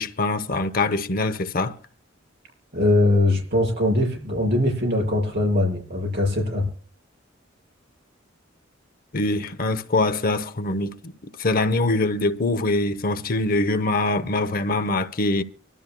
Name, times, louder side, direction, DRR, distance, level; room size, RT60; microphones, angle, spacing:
voice 1, 0.0-1.8 9.1-15.4, left 2 dB, 45° left, 0.9 m, -23 dB
voice 2, 2.7-6.6, left 1 dB, 55° right, 6.4 m, -21 dB
25.5 x 12.5 x 2.2 m
head